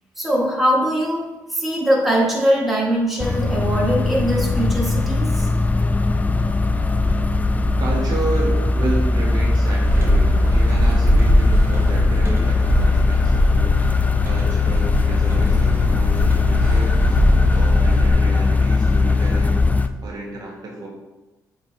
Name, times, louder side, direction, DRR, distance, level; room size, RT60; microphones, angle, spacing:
voice 1, 0.2-1.2 1.5-5.5, equal, 5° right, -5 dB, 2.2 m, -21 dB
sound 1, 3.2-19.9, left 3 dB, 20° left, 0.4 m, -19 dB
voice 2, 7.8-17.2 17.5-20.9, right 2 dB, 60° right, -2 dB, 1.4 m, -31 dB
sound 2, 9.8-18.1, equal, 35° right, 1.2 m, -21 dB
7.8 x 4.4 x 3.1 m, 1.1 s
cardioid pair, 75°, 8 cm